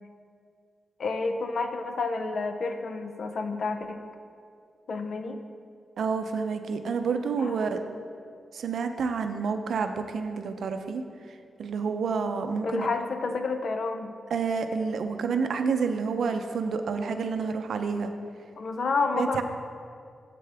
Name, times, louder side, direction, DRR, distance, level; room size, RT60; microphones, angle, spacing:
voice 1, 1.0-4.0 4.9-5.4 7.4-7.7 12.6-14.1 18.6-19.4, left 3 dB, 50° left, 6 dB, 0.5 m, -30 dB
voice 2, 6.0-7.8 8.5-11.0 11.6-12.9 14.3-18.1 19.1-19.4, right 5 dB, 70° right, 7 dB, 0.5 m, -29 dB
10.0 x 7.6 x 3.4 m, 2.3 s
wide cardioid pair, 180°, 0 cm